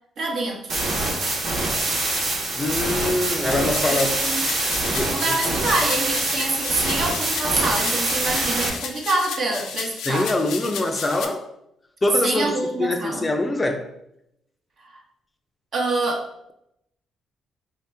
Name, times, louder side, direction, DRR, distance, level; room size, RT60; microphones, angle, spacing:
voice 1, 0.2-0.8 3.9-4.4 5.1-10.3 12.2-13.3 14.8-15.0 15.7-16.3, right 2 dB, 55° right, 0.9 m, -26 dB
sound 1, 0.7-8.7, right 2 dB, 70° right, 1.2 m, -25 dB
voice 2, 2.6-4.3 4.9-5.6 10.1-11.5 12.0-13.9, left 2 dB, 25° left, 0.5 m, -24 dB
sound 2, 3.5-11.2, left 6 dB, 85° left, 0.5 m, -34 dB
4.2 x 2.7 x 3.4 m
cardioid pair, 90°, 0 cm